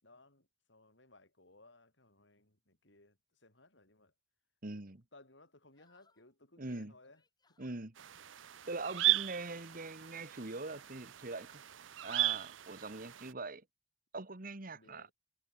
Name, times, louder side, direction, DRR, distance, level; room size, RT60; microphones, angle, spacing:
voice 1, 0.0-4.1 4.7-4.8 5.1-7.8 14.7-15.1, left 2 dB, 70° left, 6.4 m, -62 dB
voice 2, 4.6-5.0 6.6-6.9 7.6-7.9 8.7-11.6 12.0-13.6 14.1-15.1, right 3 dB, 50° right, 1.8 m, -42 dB
sound 1, 5.7-6.3 7.0-7.8 8.8-10.3, left 3 dB, 20° left, 7.2 m, -71 dB
sound 2, 8.0-13.3, right 15 dB, 85° right, 0.7 m, -36 dB
head